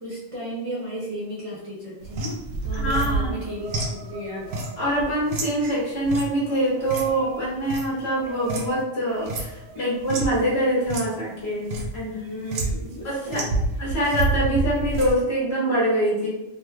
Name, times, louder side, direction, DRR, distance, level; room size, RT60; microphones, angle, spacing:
voice 1, 0.0-4.7 9.7-9.9 12.1-13.6, equal, 35° right, -8 dB, 0.6 m, -34 dB
sound 1, 2.0-8.8 9.1-10.4 10.8-11.1 11.4-11.9 12.5-13.0 13.3-15.1, right 3 dB, 70° right, 0.9 m, -29 dB
voice 2, 2.7-3.4 4.8-12.2 13.0-13.4 13.8-16.3, right 1 dB, 55° left, -5 dB, 1.2 m, -24 dB
3.2 x 2.5 x 2.3 m, 0.95 s
omnidirectional pair, 1.3 m